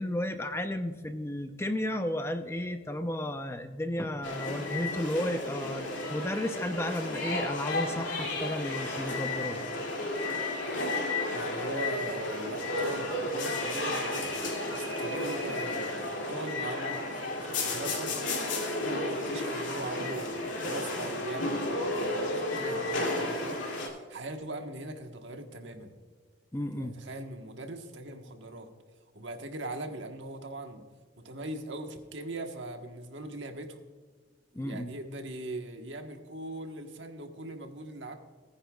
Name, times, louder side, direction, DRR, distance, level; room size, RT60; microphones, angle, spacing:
voice 1, 0.0-9.6 26.5-27.0 34.5-34.9, left 1 dB, 15° left, 8 dB, 0.5 m, -33 dB
sound 1, 4.2-23.9, left 2 dB, 80° left, 2.5 m, -32 dB
voice 2, 11.3-14.4 14.7-17.0 17.4-18.1 18.7-26.0 26.7-28.7 29.1-30.8 31.2-33.8 34.6-38.2, right 2 dB, 75° right, 5 dB, 1.3 m, -41 dB
19.0 x 9.8 x 2.3 m, 1.5 s
head